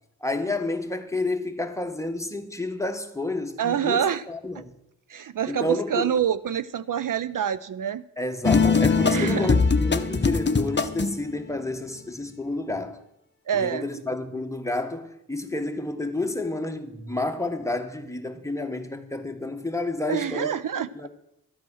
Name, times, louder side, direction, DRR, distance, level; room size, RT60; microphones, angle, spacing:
voice 1, 0.2-4.7 5.5-6.1 8.2-13.0 13.5-20.6 20.9-21.1, left 2 dB, 10° left, 1.2 m, -30 dB
voice 2, 3.6-4.2 5.1-8.0 9.0-9.5 13.5-13.9 20.1-21.1, right 9 dB, 65° right, 0.5 m, -26 dB
sound 1, 8.4-11.3, left 4 dB, 30° left, 0.8 m, -21 dB
12.5 x 8.3 x 6.2 m
wide cardioid pair, 65°, 35 cm